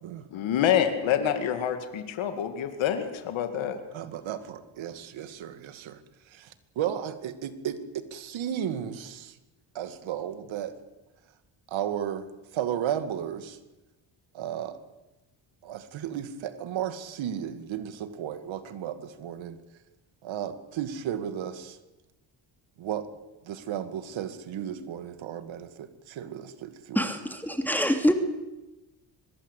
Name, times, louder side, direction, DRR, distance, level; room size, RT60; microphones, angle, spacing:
voice 1, 0.3-3.8, left 9 dB, 90° left, 7 dB, 2.4 m, -27 dB
voice 2, 3.9-6.0 6.3-7.8 8.1-9.3 9.7-10.7 11.7-12.3 12.5-13.6 14.3-14.8 15.6-19.6 20.2-21.8 22.8-23.1 23.4-27.0, right 10 dB, 85° right, 10 dB, 2.3 m, -34 dB
voice 3, 26.9-28.1, equal, 5° left, 5 dB, 2.8 m, -25 dB
24.0 x 21.5 x 8.3 m, 1.0 s
cardioid pair, 90°, 45 cm